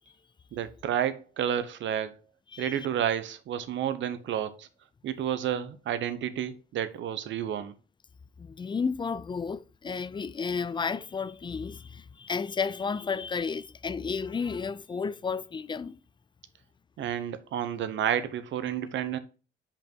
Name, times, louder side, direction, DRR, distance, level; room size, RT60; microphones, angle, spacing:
voice 1, 0.5-2.2 2.6-4.7 5.0-7.7 17.0-19.2, right 9 dB, 70° right, 0.8 m, -30 dB
voice 2, 2.5-2.9 8.4-16.0, left 5 dB, 25° left, 0.4 m, -32 dB
5.3 x 5.3 x 4.5 m
cardioid pair, 90°, 20 cm